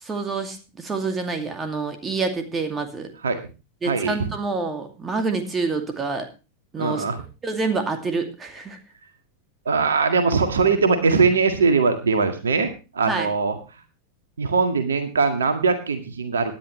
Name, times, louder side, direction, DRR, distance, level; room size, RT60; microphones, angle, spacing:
voice 1, 0.0-3.1 3.8-6.3 6.7-7.0 7.4-8.8 13.1-13.3, right 4 dB, 20° right, 6 dB, 2.4 m, -27 dB
voice 2, 3.9-4.2 6.8-7.2 9.7-13.5 14.4-16.6, right 4 dB, 70° right, 7 dB, 1.8 m, -21 dB
18.0 x 10.5 x 3.2 m, 0.31 s
figure-of-eight pair, 90°, 0 cm